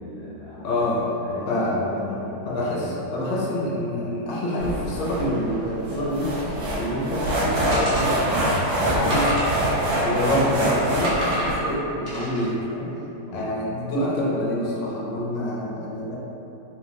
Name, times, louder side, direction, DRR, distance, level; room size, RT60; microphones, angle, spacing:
voice 1, 0.0-0.9 1.2-2.9 13.2-13.5, left 1 dB, 60° right, -10 dB, 1.3 m, -36 dB
voice 2, 0.6-1.2 1.5-1.9 2.5-8.4 8.9-9.3 9.9-12.9 13.3-16.2, left 1 dB, 75° left, -5 dB, 1.2 m, -26 dB
sound 1, 4.6-11.5, right 1 dB, 85° right, 1.7 m, -25 dB
sound 2, 7.7-8.5 9.1-10.6 11.0-11.6 12.1-12.5, equal, 45° right, 0.7 m, -29 dB
4.2 x 2.1 x 2.8 m, 2.9 s
omnidirectional pair, 2.0 m